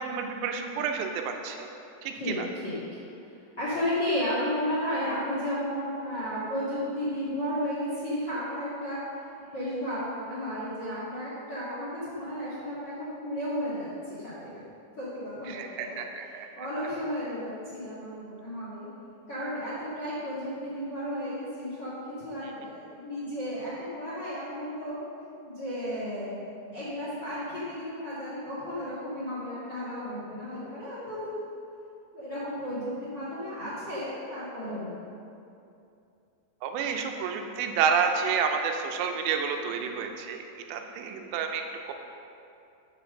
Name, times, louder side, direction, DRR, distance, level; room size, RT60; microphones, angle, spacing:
voice 1, 0.0-1.7 2.0-2.5 15.5-16.5 22.4-22.5 36.6-41.9, right 6 dB, 85° right, 4 dB, 2.8 m, -30 dB
voice 2, 3.6-9.0 9.5-14.6 15.0-16.0 16.5-18.9 19.3-21.9 22.2-25.0 25.4-26.4 26.7-31.5 32.1-34.9 37.2-37.3, equal, 45° left, -9 dB, 1.4 m, -33 dB
8.0 x 6.3 x 6.5 m, 2.6 s
omnidirectional pair, 5.0 m